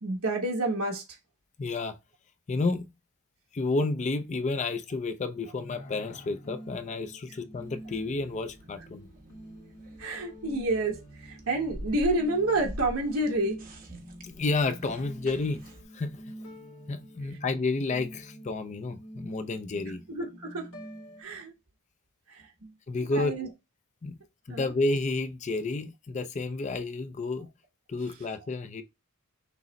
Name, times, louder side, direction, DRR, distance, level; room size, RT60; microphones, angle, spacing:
voice 1, 0.0-1.0 10.0-13.6 20.1-20.7 21.2-21.5 22.3-22.7 23.1-23.5 24.5-24.7, right 2 dB, 75° right, 1.2 m, -29 dB
voice 2, 1.6-2.0 2.5-2.9 3.5-9.1 14.2-15.6 15.9-16.4 16.9-20.0 22.9-23.3 24.0-24.2 24.5-27.5 27.9-28.8, left 3 dB, 35° left, 0.4 m, -30 dB
sound 1, 5.6-21.2, right 1 dB, 75° left, 1.3 m, -47 dB
sound 2, 7.5-15.8, equal, 40° right, 1.0 m, -45 dB
6.1 x 2.1 x 4.0 m
head